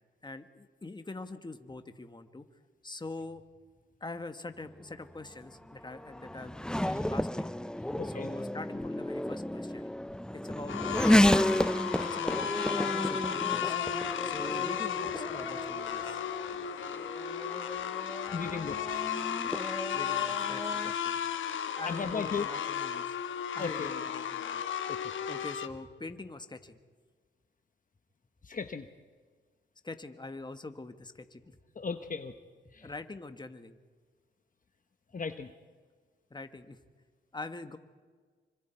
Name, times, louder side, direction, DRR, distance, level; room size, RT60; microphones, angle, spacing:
voice 1, 0.2-2.5 2.8-3.4 4.0-7.5 8.0-9.9 10.3-11.3 12.0-12.4 12.7-13.7 14.2-16.2 18.3-18.5 19.9-21.2 21.8-23.1 23.5-25.0 25.3-26.8 29.8-31.5 31.8-31.9 32.6-33.8 36.3-36.8 37.3-37.8, left 2 dB, 25° left, 8 dB, 1.5 m, -44 dB
Race car auto racing / Accelerating revving vroom, 4.7-20.9, left 1 dB, 5° left, 0.5 m, -32 dB
voice 2, 8.0-8.3 18.3-19.1 19.5-19.7 21.9-22.5 23.6-24.0 24.9-25.1 28.4-28.9 31.7-32.3 32.7-32.9 35.1-35.5, left 5 dB, 45° left, 7 dB, 1.1 m, -37 dB
sound 1, 10.7-25.7, left 9 dB, 90° left, 1.1 m, -34 dB
26.5 x 25.0 x 4.6 m, 1.5 s
cardioid pair, 75°, 20 cm